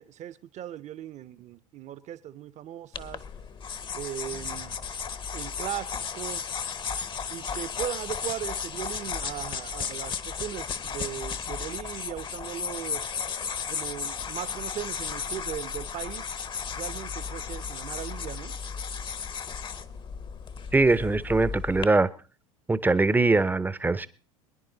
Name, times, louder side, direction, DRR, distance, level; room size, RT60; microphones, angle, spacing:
voice 1, 0.0-3.2 3.9-4.8 5.3-6.5 7.3-13.0 13.7-16.3 16.7-18.5, right 11 dB, 40° right, 0.9 m, -38 dB
sound 1, 2.9-21.8, left 6 dB, 25° left, 0.9 m, -34 dB
voice 2, 20.7-22.1 22.7-24.1, right 3 dB, 10° right, 0.8 m, -22 dB
23.5 x 10.5 x 4.0 m
hypercardioid pair, 85°, 18 cm